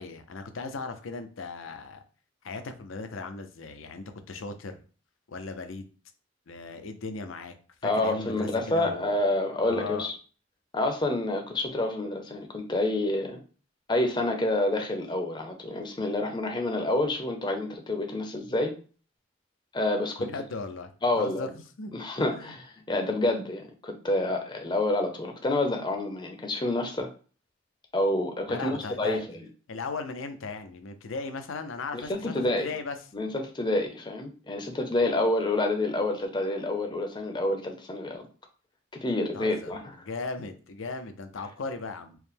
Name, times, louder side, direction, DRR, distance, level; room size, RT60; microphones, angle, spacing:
voice 1, 0.0-2.0 2.4-4.8 5.3-5.9 6.5-7.5 7.8-9.2 9.6-10.1 20.2-20.9 21.2-21.9 22.3-22.5 28.5-29.2 29.7-33.0 39.3-39.7 40.0-42.2, left 4 dB, 85° left, 8 dB, 0.6 m, -37 dB
voice 2, 7.8-10.1 10.7-13.4 13.9-18.7 19.7-20.3 21.0-21.5 21.9-27.1 27.9-29.5 31.9-32.7 33.1-38.2 39.0-39.9, left 2 dB, 25° left, 3 dB, 0.6 m, -28 dB
4.6 x 2.1 x 3.4 m, 0.38 s
head